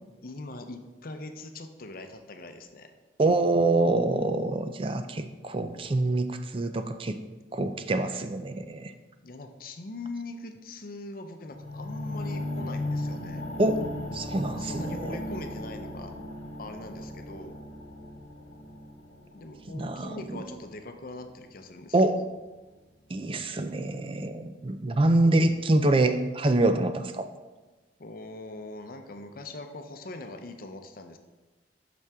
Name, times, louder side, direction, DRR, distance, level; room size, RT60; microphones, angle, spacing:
voice 1, 0.2-2.9 9.2-13.4 14.6-16.2 16.6-17.6 19.3-22.0 28.0-31.2, left 2 dB, 50° left, 6 dB, 0.7 m, -41 dB
voice 2, 3.2-7.2 7.5-8.9 13.6-13.8 14.1-15.1 19.7-20.4 21.9-22.2 23.1-27.3, right 2 dB, 30° right, 9 dB, 0.4 m, -25 dB
sound 1, 11.4-21.6 22.2-22.3, left 1 dB, 80° left, 1.0 m, -37 dB
8.3 x 6.1 x 3.5 m, 1.2 s
head